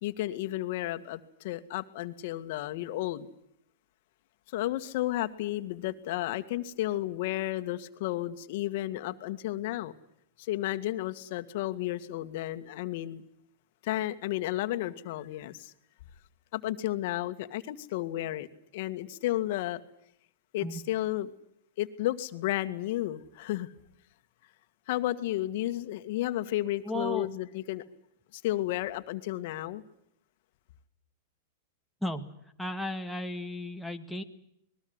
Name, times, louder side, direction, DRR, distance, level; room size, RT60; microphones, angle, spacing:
voice 1, 0.0-3.3 4.5-9.9 10.4-13.2 13.8-15.7 16.5-18.5 18.7-19.8 20.5-21.3 21.8-23.7 24.9-27.8 28.3-29.8, left 15 dB, 60° left, 10 dB, 1.9 m, -32 dB
voice 2, 26.9-27.3 32.0-32.2 32.6-34.2, left 1 dB, ahead, 2 dB, 2.1 m, -34 dB
27.0 x 21.0 x 8.0 m, 0.73 s
hypercardioid pair, 125°, 0 cm